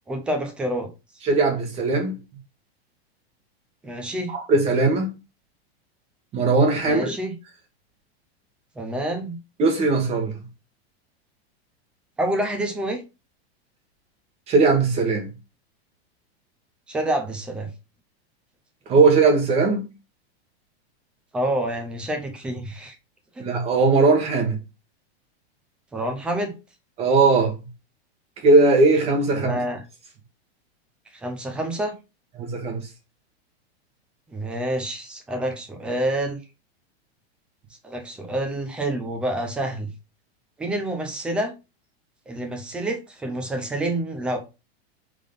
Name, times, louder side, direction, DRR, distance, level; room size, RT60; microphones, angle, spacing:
voice 1, 0.1-0.9 3.8-4.3 6.9-7.3 8.8-9.4 12.2-13.0 16.9-17.7 21.3-23.0 23.4-23.5 25.9-26.5 29.3-29.8 31.1-31.9 34.3-36.4 37.8-39.9 40.6-41.5 42.3-44.4, right 1 dB, 5° right, 0.4 m, -27 dB
voice 2, 1.2-2.1 4.5-5.1 6.3-7.2 9.6-10.4 14.5-15.3 18.9-19.8 23.4-24.6 27.0-27.6 28.4-29.6 32.4-32.8, right 3 dB, 20° right, 1.2 m, -19 dB
5.1 x 3.8 x 5.2 m
supercardioid pair, 175°, 32 cm